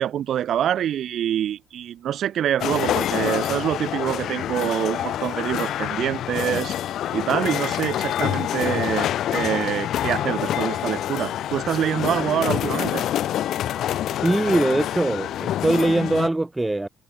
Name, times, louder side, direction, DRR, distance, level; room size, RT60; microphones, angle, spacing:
voice 1, 0.0-6.7 7.1-13.0, right 10 dB, 70° right, 1.0 m, -25 dB
sound 1, 2.6-16.3, left 11 dB, 75° left, 1.5 m, -26 dB
voice 2, 14.2-16.9, right 2 dB, 15° right, 1.8 m, -22 dB
cardioid pair, 90°, 0 cm